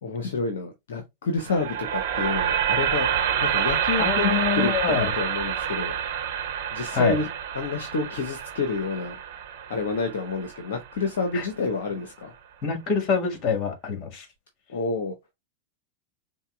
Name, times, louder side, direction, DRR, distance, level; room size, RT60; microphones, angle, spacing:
voice 1, 0.0-5.9 6.7-7.3 7.5-9.2 9.7-12.3 14.7-15.1, left 4 dB, 60° left, 0.8 m, -29 dB
sound 1, 1.4-11.5, right 9 dB, 50° right, 1.0 m, -28 dB
voice 2, 4.0-5.1 6.9-7.2 11.3-11.5 12.6-14.3, left 6 dB, 35° left, 1.8 m, -25 dB
5.4 x 2.2 x 3.3 m
figure-of-eight pair, 90°, 0 cm